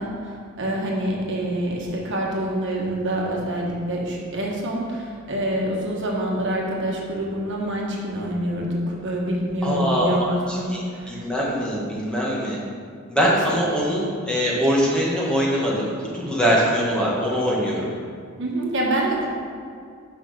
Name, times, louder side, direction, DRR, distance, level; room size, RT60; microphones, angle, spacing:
voice 1, 0.0-11.3 13.5-13.6 18.4-19.3, right 1 dB, 60° right, -2 dB, 1.4 m, -26 dB
voice 2, 9.6-10.8 11.1-12.6 13.1-17.9, equal, 5° left, -6 dB, 1.6 m, -22 dB
6.5 x 5.8 x 6.8 m, 2.2 s
head